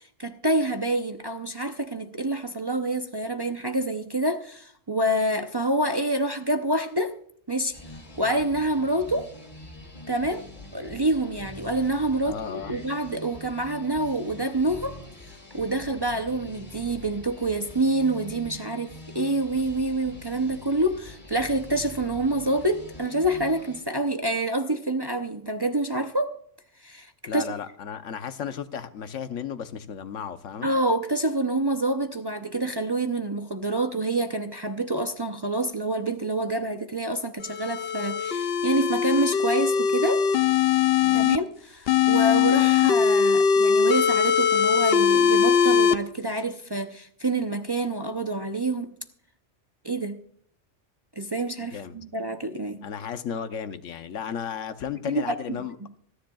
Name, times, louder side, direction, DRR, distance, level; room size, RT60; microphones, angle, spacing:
voice 1, 0.0-7.2 7.5-7.7 8.2-9.3 10.1-10.5 10.7-15.0 15.3-26.3 26.8-27.4 30.6-40.2 41.1-49.0 49.8-50.2 51.2-52.8 55.0-55.6, right 1 dB, 25° right, 0.5 m, -27 dB
sound 1, 7.7-23.8, left 2 dB, 40° left, 2.9 m, -44 dB
voice 2, 12.2-12.8 27.3-30.7 41.0-41.3 51.6-52.0 52.8-55.8, left 8 dB, 85° left, 1.2 m, -34 dB
sound 2, 37.4-41.4 41.9-45.9, left 7 dB, 60° left, 0.8 m, -21 dB
26.0 x 10.0 x 2.3 m
omnidirectional pair, 1.3 m